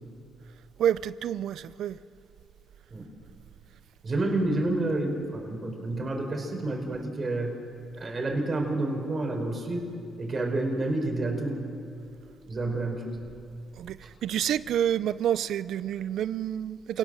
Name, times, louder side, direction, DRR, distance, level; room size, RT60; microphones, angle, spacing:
voice 1, 0.8-2.0 13.8-17.0, right 10 dB, 75° right, 0.6 m, -28 dB
voice 2, 4.0-7.6 8.0-9.9 10.2-11.6 12.4-13.2 14.0-14.1, right 2 dB, 35° right, 5.0 m, -29 dB
27.5 x 18.5 x 7.7 m
cardioid pair, 90°, 0 cm